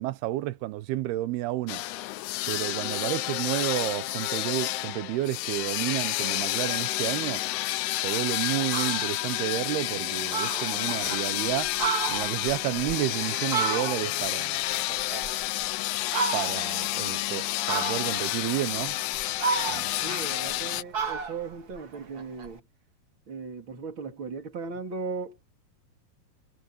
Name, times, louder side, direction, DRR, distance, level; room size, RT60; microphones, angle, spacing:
voice 1, 0.0-1.8 2.5-7.4 8.0-11.7 12.1-14.6 16.3-19.0 19.7-19.9, right 16 dB, 80° right, 2.8 m, -31 dB
sound 1, 1.7-20.8, left 17 dB, 85° left, 2.8 m, -30 dB
Fowl, 8.1-8.2 8.6-9.2 9.6-9.7 10.0-10.1 10.3-11.2 11.6-14.3 14.6-15.7 16.1-16.8 17.7-18.3 18.9-20.6 20.9-22.5, right 5 dB, 60° right, 0.9 m, -32 dB
voice 2, 20.0-22.6 23.3-25.4, right 4 dB, 30° right, 3.7 m, -37 dB
omnidirectional pair, 4.6 m